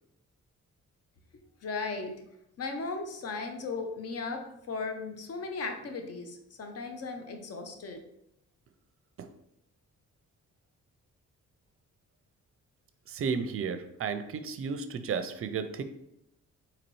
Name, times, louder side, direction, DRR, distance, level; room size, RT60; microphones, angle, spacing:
voice 1, 1.6-2.1 2.6-8.0, left 4 dB, 55° left, 5 dB, 0.7 m, -36 dB
voice 2, 13.1-15.8, right 6 dB, 45° right, 10 dB, 0.5 m, -33 dB
4.0 x 2.9 x 3.1 m, 0.80 s
cardioid pair, 70°, 31 cm